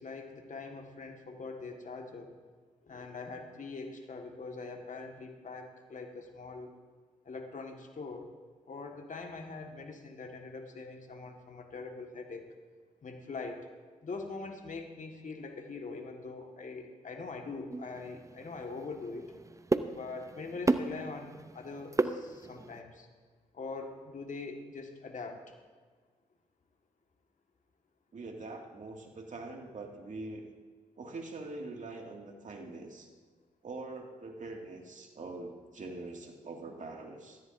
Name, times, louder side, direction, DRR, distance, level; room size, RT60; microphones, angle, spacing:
voice 1, 0.0-2.3 2.8-6.7 7.2-8.3 8.7-12.4 13.0-13.7 14.0-19.3 19.9-23.1 23.5-25.5, left 3 dB, 50° left, 4 dB, 1.7 m, -43 dB
sound 1, 17.7-22.8, right 3 dB, 20° right, 0.7 m, -34 dB
voice 2, 28.1-30.5 31.0-33.1 33.6-37.4, right 3 dB, 50° right, 2 dB, 2.2 m, -43 dB
16.0 x 14.0 x 2.7 m, 1.5 s
hypercardioid pair, 40°, 17 cm